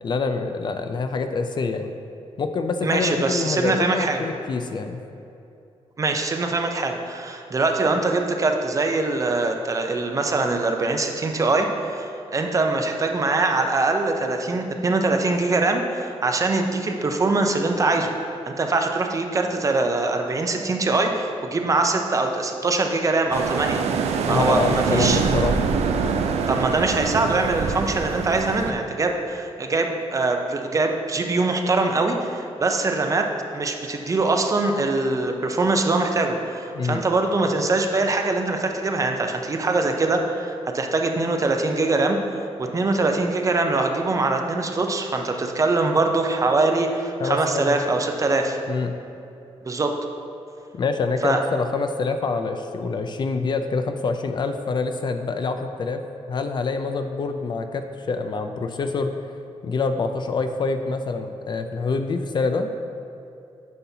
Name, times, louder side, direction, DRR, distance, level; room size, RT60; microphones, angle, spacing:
voice 1, 0.0-1.9 2.4-5.0 24.3-25.7 36.7-37.0 47.2-47.9 48.7-49.0 50.7-56.0 56.3-59.1 59.6-62.7, left 4 dB, 45° left, 7 dB, 0.4 m, -26 dB
voice 2, 2.8-4.2 6.0-18.1 18.5-23.8 24.3-25.2 26.5-42.2 42.6-48.6 49.6-49.9 51.2-51.4, right 3 dB, 30° right, 4 dB, 0.6 m, -23 dB
sound 1, 23.3-28.7, right 5 dB, 80° right, 0.5 m, -24 dB
9.3 x 5.7 x 2.8 m, 2.7 s
wide cardioid pair, 125°, 11 cm